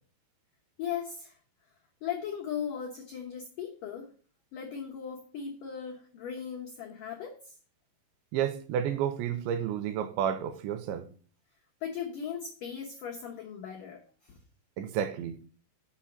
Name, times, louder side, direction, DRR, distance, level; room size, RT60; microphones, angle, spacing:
voice 1, 0.8-1.3 2.0-4.1 4.5-7.5 11.8-14.4, left 8 dB, 90° left, 1.8 m, -38 dB
voice 2, 8.3-11.1 14.8-15.4, right 9 dB, 85° right, 2.8 m, -31 dB
7.4 x 4.9 x 7.2 m
omnidirectional pair, 5.5 m